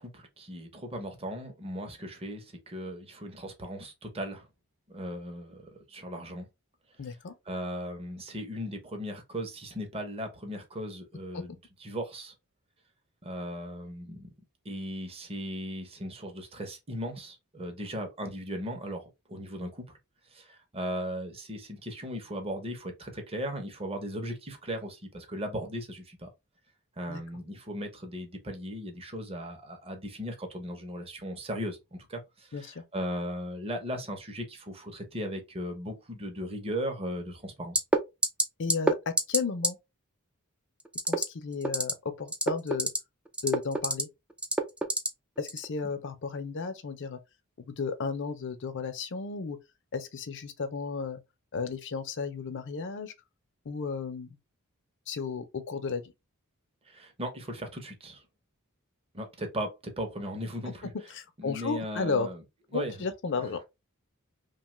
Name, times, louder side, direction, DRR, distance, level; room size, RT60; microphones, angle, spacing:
voice 1, 0.0-4.5 4.9-5.6 5.9-6.5 7.5-11.5 11.8-12.3 13.2-14.3 14.6-19.8 20.3-26.3 27.0-37.8 56.9-58.2 59.1-60.9 61.4-62.4 62.7-62.9, equal, 25° right, 0.7 m, -37 dB
voice 2, 7.0-7.3 11.3-11.4 27.1-27.2 32.5-32.8 38.6-39.8 41.0-42.9 43.4-44.1 45.4-47.2 47.6-49.6 49.9-51.2 51.5-53.1 53.7-54.4 55.1-56.0 61.1-62.3 62.7-63.6, left 5 dB, 55° left, 0.5 m, -33 dB
sound 1, 37.7-38.0 38.2-38.4 38.7-38.9 39.2-39.4 39.6-39.7 40.9-41.2 41.6-41.9 42.3-43.0 43.3-44.0 44.4-45.1 45.5-45.6, right 1 dB, 5° right, 0.3 m, -25 dB
2.8 x 2.3 x 3.0 m
head